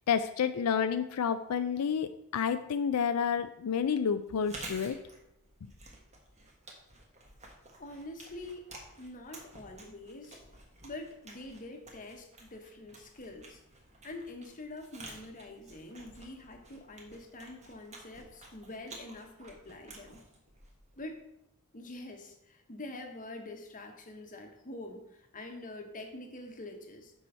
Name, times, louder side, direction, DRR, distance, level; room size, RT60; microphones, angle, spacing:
voice 1, 0.1-5.0 5.6-5.7, left 7 dB, 90° left, 10 dB, 0.4 m, -30 dB
Chewing mastication, 4.3-21.2, right 2 dB, 30° right, 1.4 m, -51 dB
voice 2, 7.8-8.7 9.0-10.4 10.8-13.6 14.0-20.2 21.0-21.2 21.7-27.1, left 2 dB, 35° left, 4 dB, 1.1 m, -45 dB
6.8 x 4.8 x 5.4 m, 0.81 s
head